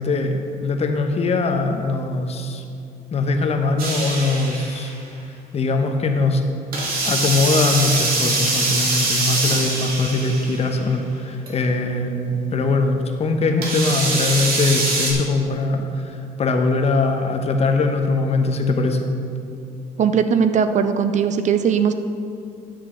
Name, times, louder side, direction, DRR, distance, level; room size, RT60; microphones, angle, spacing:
voice 1, 0.0-2.6 3.1-4.9 5.5-6.4 7.0-19.0, left 3 dB, 40° left, 5 dB, 0.9 m, -21 dB
sound 1, 3.8-4.9 6.7-10.7 11.5-11.6 13.6-15.1, right 2 dB, 60° right, 2.1 m, -23 dB
voice 2, 20.0-21.9, right 7 dB, 45° right, 9 dB, 0.5 m, -19 dB
10.0 x 8.0 x 3.8 m, 2.5 s
cardioid pair, 110°, 17 cm